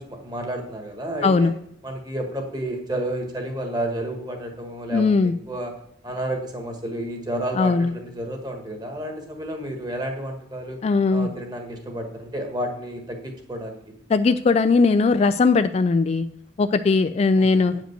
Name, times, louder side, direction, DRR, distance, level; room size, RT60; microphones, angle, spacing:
voice 1, 0.0-1.6 1.8-5.7 6.0-10.8 11.1-13.8 17.3-17.8, right 1 dB, 20° right, 3 dB, 1.5 m, -31 dB
voice 2, 1.2-1.5 4.9-5.3 7.6-7.9 10.8-11.3 14.1-16.3 16.6-17.7, left 4 dB, 35° left, 11 dB, 0.3 m, -19 dB
9.0 x 5.1 x 6.6 m, 0.67 s
head